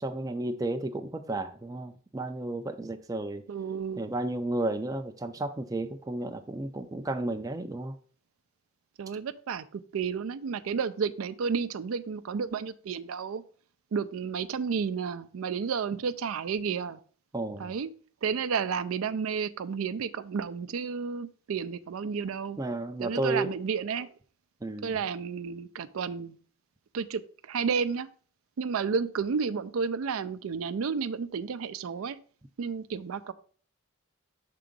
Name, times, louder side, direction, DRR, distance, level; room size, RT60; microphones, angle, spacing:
voice 1, 0.0-3.5 4.0-7.9 17.3-17.7 22.6-23.5 24.6-25.0, right 2 dB, 15° right, 0.4 m, -33 dB
voice 2, 3.5-4.0 9.0-13.4 13.9-17.0 17.6-17.9 18.2-22.6 23.0-24.1 24.8-26.4 26.9-28.1 28.6-32.2 32.6-33.3, right 6 dB, 85° right, 0.4 m, -31 dB
5.9 x 3.8 x 5.2 m
head